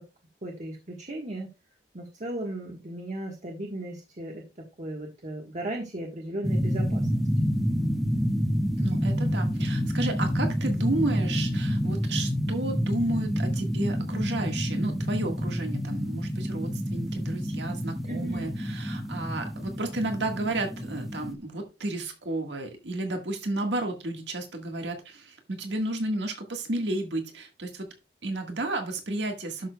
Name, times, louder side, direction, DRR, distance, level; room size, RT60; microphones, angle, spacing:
voice 1, 0.4-1.5 1.9-4.4 4.8-7.0 18.0-18.5, right 1 dB, 45° right, 1 dB, 1.4 m, -36 dB
sound 1, 6.4-21.3, equal, ahead, 0.8 m, -28 dB
voice 2, 8.8-27.9 28.2-29.7, right 2 dB, 80° right, 3 dB, 1.7 m, -32 dB
12.0 x 6.5 x 2.3 m, 0.27 s
head